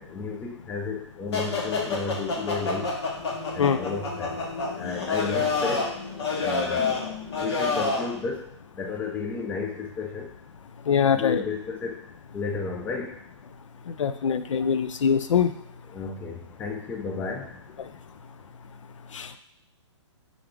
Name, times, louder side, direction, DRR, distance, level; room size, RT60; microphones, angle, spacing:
voice 1, 0.0-3.0 3.5-4.4 4.8-6.0 6.4-10.3 11.1-12.0 12.3-13.2 15.9-17.9, left 5 dB, 10° left, 2 dB, 0.4 m, -33 dB
sound 1, 1.3-8.1, left 4 dB, 60° left, 1.1 m, -28 dB
voice 2, 10.9-11.4 13.9-15.5 19.1-19.3, left 7 dB, 90° left, 10 dB, 0.4 m, -23 dB
3.7 x 3.6 x 3.5 m, 0.71 s
hypercardioid pair, 145°, 16 cm